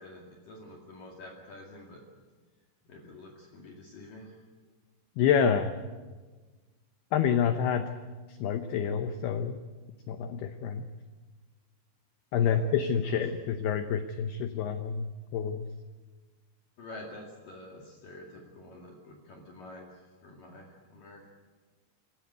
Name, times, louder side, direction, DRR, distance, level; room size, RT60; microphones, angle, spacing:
voice 1, 0.0-2.0 2.8-4.4 12.4-12.7 13.0-13.2 16.8-21.3, left 2 dB, 50° left, 0 dB, 3.4 m, -47 dB
voice 2, 5.2-5.7 7.1-7.8 8.4-9.6 10.1-10.8 12.3-15.7, left 7 dB, 80° left, 8 dB, 2.4 m, -28 dB
27.0 x 14.5 x 9.4 m, 1.3 s
omnidirectional pair, 5.7 m